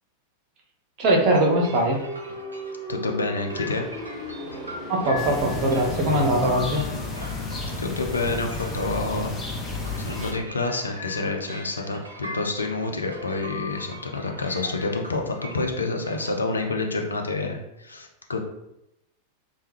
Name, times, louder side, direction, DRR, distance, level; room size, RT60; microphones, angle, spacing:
voice 1, 1.0-2.0 4.9-6.8, right 1 dB, 40° right, 0 dB, 0.6 m, -21 dB
sound 1, 1.2-6.2, equal, 10° right, 0.9 m, -37 dB
sound 2, 1.2-16.3, left 3 dB, 80° right, 0.3 m, -41 dB
voice 2, 2.9-3.9 7.8-9.3 10.0-18.4, left 3 dB, 75° left, 3 dB, 0.4 m, -28 dB
sound 3, 5.2-10.3, left 2 dB, 20° left, 0.5 m, -31 dB
2.2 x 2.1 x 3.2 m, 0.86 s
figure-of-eight pair, 90°, 0 cm